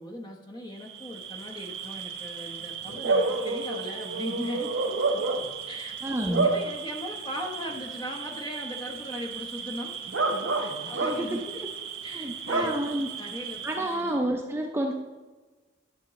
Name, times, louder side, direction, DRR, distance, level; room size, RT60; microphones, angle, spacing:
voice 1, 0.0-4.7 5.7-9.9 10.6-11.6 12.0-12.8 13.2-14.1, left 1 dB, 25° left, 1 dB, 1.0 m, -38 dB
Bark / Cricket, 0.8-14.1, right 3 dB, 85° right, 1.1 m, -31 dB
voice 2, 6.0-6.5 10.9-11.3 12.1-13.1 13.6-14.9, right 1 dB, 15° right, 1 dB, 0.5 m, -29 dB
11.0 x 6.1 x 3.1 m, 1.3 s
head